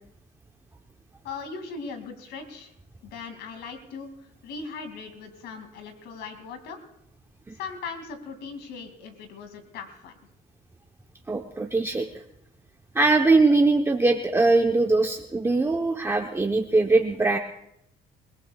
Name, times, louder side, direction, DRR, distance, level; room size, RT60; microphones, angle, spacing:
voice 1, 1.2-2.7 3.0-6.8 7.5-10.1, left 5 dB, 85° left, 6 dB, 2.5 m, -39 dB
voice 2, 11.3-12.1 12.9-17.4, right 3 dB, 15° right, 3 dB, 0.9 m, -21 dB
28.0 x 18.0 x 2.4 m, 0.78 s
cardioid pair, 110°, 17 cm